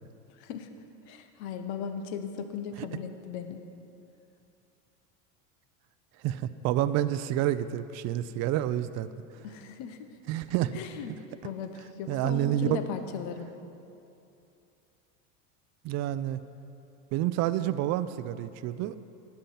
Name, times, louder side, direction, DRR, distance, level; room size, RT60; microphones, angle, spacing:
voice 1, 1.1-3.6 9.4-10.1 10.7-11.1 11.4-13.5, left 7 dB, 65° left, 8 dB, 1.0 m, -37 dB
voice 2, 6.2-9.1 10.3-10.7 12.1-12.8 15.8-16.4 17.1-19.0, right 12 dB, 45° right, 12 dB, 0.5 m, -28 dB
11.5 x 8.8 x 5.7 m, 2.7 s
supercardioid pair, 110°, 38 cm